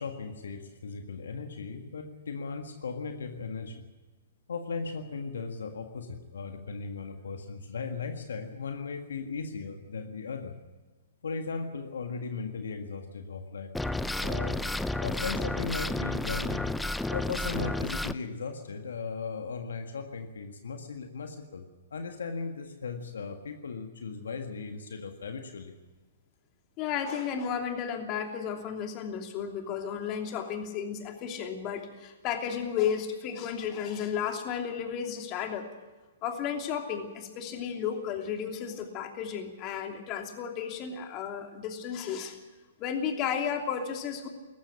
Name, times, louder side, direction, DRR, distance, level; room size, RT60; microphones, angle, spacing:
voice 1, 0.0-3.8 4.5-10.5 11.2-13.7 14.2-14.6 15.0-16.7 17.1-25.7, left 4 dB, 75° left, 5 dB, 1.8 m, -37 dB
sound 1, 13.7-18.1, left 2 dB, 5° left, 0.6 m, -31 dB
voice 2, 26.8-35.7 36.2-42.4 42.8-44.3, left 7 dB, 35° left, 4 dB, 3.0 m, -33 dB
19.0 x 14.5 x 9.9 m, 1.2 s
hypercardioid pair, 125°, 0 cm